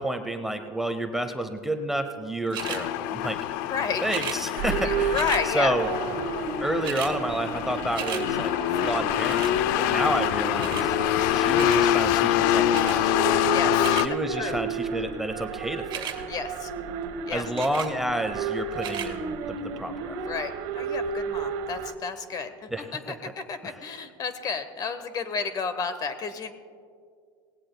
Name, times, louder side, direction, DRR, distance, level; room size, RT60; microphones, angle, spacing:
voice 1, 0.0-3.7 4.0-5.2 5.5-5.9 6.6-10.9 11.3-13.2 13.9-16.2 17.3-20.2 22.7-23.2 23.6-23.8, right 1 dB, 5° right, 6 dB, 0.7 m, -30 dB
sound 1, 2.5-2.8 4.0-4.4 5.1-5.4 6.4-6.5 6.7-7.1 7.5-8.2 9.2-9.6 10.6-10.9 11.5-11.8 12.7-13.0 13.6-14.1 15.8-16.2 17.6-17.9 18.7-19.1 19.8-19.9, right 9 dB, 40° right, 1.9 m, -35 dB
sound 2, 2.6-14.1, left 13 dB, 70° left, 0.4 m, -25 dB
voice 2, 3.6-4.3 4.8-5.7 13.5-14.0 14.3-14.5 16.3-16.7 17.3-17.4 20.3-26.5, left 5 dB, 35° left, 11 dB, 0.9 m, -32 dB
sound 3, 4.6-21.9, right 5 dB, 65° right, 1.1 m, -32 dB
18.5 x 16.5 x 2.2 m, 2.1 s
supercardioid pair, 125°, 11 cm